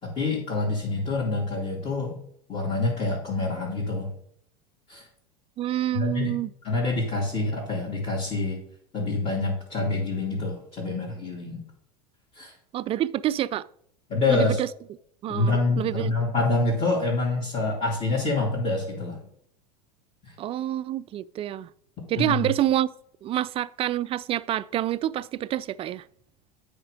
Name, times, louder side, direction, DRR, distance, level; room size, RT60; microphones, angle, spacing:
voice 1, 0.0-2.2 2.5-4.1 4.9-5.1 5.9-6.3 6.6-8.6 8.9-11.6 12.3-12.5 14.1-14.6 15.3-19.2 20.2-20.4 22.2-22.5, left 3 dB, 30° left, 2.8 m, -26 dB
voice 2, 5.6-6.5 12.7-13.7 14.3-14.7 15.2-16.1 20.4-21.7 22.1-22.9 23.2-26.1, right 12 dB, 30° right, 0.3 m, -27 dB
8.7 x 5.1 x 5.1 m
hypercardioid pair, 90°, 20 cm